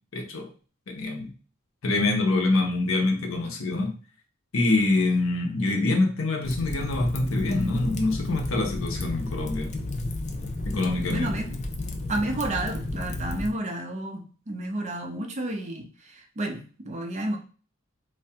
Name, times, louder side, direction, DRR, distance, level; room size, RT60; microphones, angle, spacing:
voice 1, 0.1-0.5 0.9-1.3 1.8-4.0 4.5-9.7 10.6-11.3, left 2 dB, 70° left, 3 dB, 0.7 m, -25 dB
Fire, 6.4-13.5, left 2 dB, 35° left, 0.4 m, -32 dB
voice 2, 11.1-11.5 12.1-17.4, right 1 dB, 35° right, 3 dB, 0.5 m, -31 dB
3.3 x 2.1 x 2.7 m, 0.38 s
head